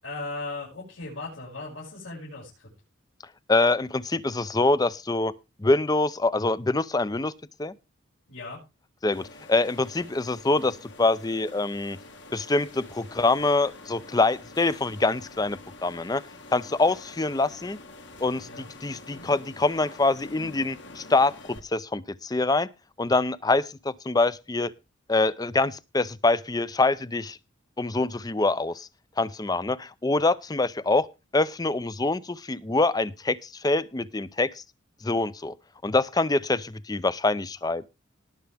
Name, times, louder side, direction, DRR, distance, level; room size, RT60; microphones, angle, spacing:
voice 1, 0.0-2.7 8.3-8.6 18.4-18.7, left 3 dB, 80° left, -7 dB, 6.1 m, -37 dB
voice 2, 3.5-5.3 5.6-7.3 7.6-7.7 9.0-12.0 12.3-16.2 16.5-17.8 18.2-22.7 23.0-24.7 25.1-27.4 27.8-28.9 29.2-31.1 31.3-34.6 35.0-35.5 35.8-37.8, left 2 dB, 20° left, 17 dB, 0.5 m, -25 dB
sound 1, 9.1-21.6, left 2 dB, 60° left, 1.9 m, -46 dB
19.0 x 7.0 x 3.5 m, 0.27 s
head